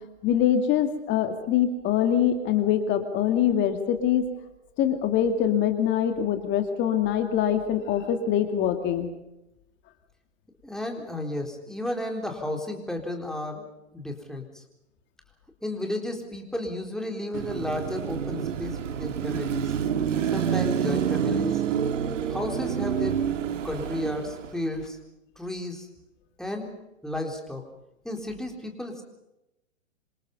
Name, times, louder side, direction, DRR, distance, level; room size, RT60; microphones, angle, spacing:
voice 1, 0.2-4.2 4.8-9.1, left 9 dB, 30° left, 6 dB, 2.5 m, -24 dB
voice 2, 10.6-14.6 15.6-19.7 20.3-21.6 22.2-23.3 23.6-25.0 25.4-25.9 26.4-26.8 27.0-27.6 28.0-29.0, left 1 dB, ahead, 2 dB, 4.0 m, -33 dB
Car passing by / Traffic noise roadway noise / Engine, 17.3-24.7, right 8 dB, 70° right, 1.8 m, -28 dB
27.0 x 26.0 x 5.5 m, 0.90 s
hypercardioid pair, 125°, 38 cm